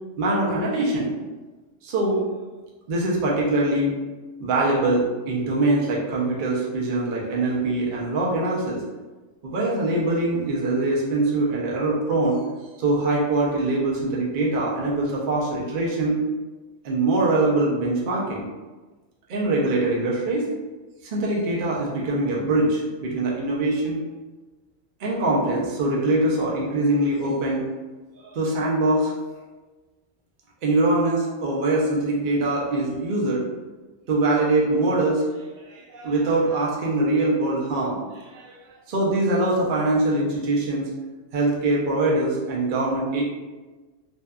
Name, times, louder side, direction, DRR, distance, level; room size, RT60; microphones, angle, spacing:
voice 1, 0.2-1.1 1.8-2.2 2.9-3.9 4.4-8.8 9.4-12.4 12.8-16.2 16.8-18.5 19.3-20.5 21.0-24.0 25.0-27.6 28.2-29.1 30.6-33.4 34.1-38.6 38.9-40.9 41.3-43.2, right 2 dB, 65° right, -4 dB, 0.5 m, -23 dB
2.7 x 2.3 x 2.2 m, 1.3 s
omnidirectional pair, 1.4 m